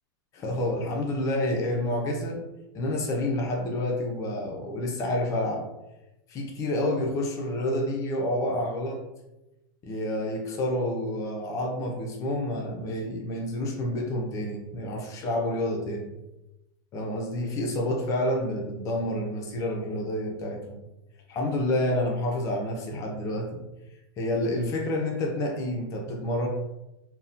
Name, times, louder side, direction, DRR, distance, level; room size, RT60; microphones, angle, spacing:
voice 1, 0.3-2.4 2.7-5.7 6.3-9.0 9.8-16.1 16.9-20.8 21.3-23.6 24.2-26.5, left 1 dB, 25° left, 1 dB, 0.4 m, -29 dB
2.6 x 2.1 x 2.5 m, 0.96 s
supercardioid pair, 145°, 12 cm